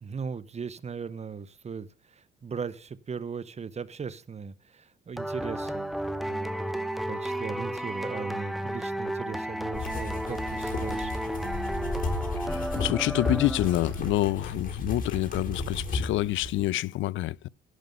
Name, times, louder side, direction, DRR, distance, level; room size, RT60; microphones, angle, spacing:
voice 1, 0.0-5.9 6.2-11.1, right 6 dB, 35° right, 0.9 m, -38 dB
sound 1, 5.2-14.1, right 1 dB, ahead, 1.0 m, -33 dB
sound 2, 9.7-16.7, left 2 dB, 45° left, 4.3 m, -34 dB
voice 2, 12.4-17.5, left 16 dB, 75° left, 0.4 m, -27 dB
11.5 x 5.2 x 7.8 m
cardioid pair, 90°, 20 cm